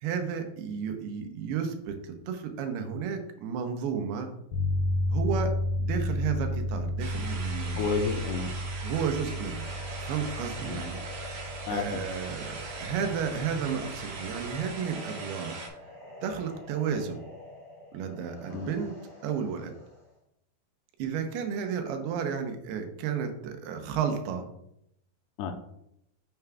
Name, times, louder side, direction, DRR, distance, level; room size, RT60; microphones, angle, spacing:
voice 1, 0.0-4.3 5.1-7.8 8.8-9.7 10.0-11.3 11.7-15.6 16.2-17.2 17.9-19.0 19.2-19.7 21.0-24.5, right 7 dB, 85° right, 5 dB, 2.8 m, -32 dB
sound 1, 4.5-14.6, left 1 dB, 70° left, 2.6 m, -33 dB
sound 2, 7.0-15.7, right 4 dB, 55° right, 2.6 m, -41 dB
voice 2, 7.7-8.6 10.7-10.9 11.7-12.0 18.5-18.7 25.4-25.5, left 5 dB, 90° left, 4 dB, 2.7 m, -31 dB
sound 3, 9.0-20.1, left 1 dB, 15° left, 1.6 m, -46 dB
9.2 x 6.8 x 2.3 m, 0.79 s
omnidirectional pair, 4.6 m